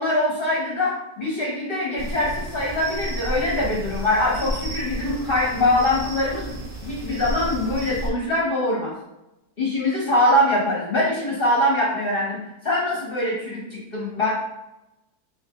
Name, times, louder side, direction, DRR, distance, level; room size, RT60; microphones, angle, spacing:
voice 1, 0.0-6.5 6.8-8.9 9.6-12.4 12.6-14.3, left 1 dB, 45° left, -6 dB, 0.9 m, -23 dB
sound 1, 2.0-8.1, right 1 dB, 35° right, 0.9 m, -32 dB
3.2 x 2.9 x 3.5 m, 0.93 s
omnidirectional pair, 1.8 m